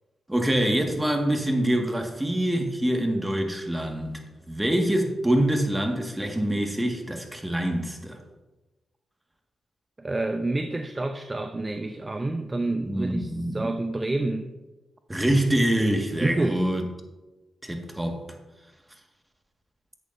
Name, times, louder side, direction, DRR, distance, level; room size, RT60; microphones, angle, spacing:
voice 1, 0.3-4.2 4.5-8.2 12.9-13.7 15.1-16.8 17.6-18.2, right 1 dB, 15° right, 3 dB, 1.8 m, -25 dB
voice 2, 10.0-14.5 16.2-16.6, right 2 dB, 30° right, 7 dB, 0.6 m, -28 dB
11.0 x 8.0 x 2.7 m, 1.1 s
supercardioid pair, 50°, 0 cm